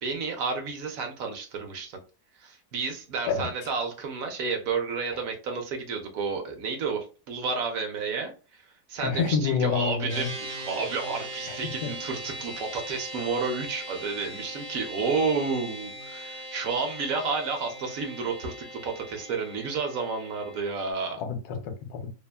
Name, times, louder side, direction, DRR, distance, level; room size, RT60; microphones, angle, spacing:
voice 1, 0.0-2.0 2.4-21.2, right 4 dB, 70° right, 0.9 m, -31 dB
voice 2, 9.0-10.3 11.5-11.9 21.2-22.1, left 6 dB, 80° left, 1.1 m, -28 dB
sound 1, 10.1-20.9, right 1 dB, 85° right, 0.3 m, -40 dB
2.7 x 2.4 x 2.2 m
omnidirectional pair, 1.7 m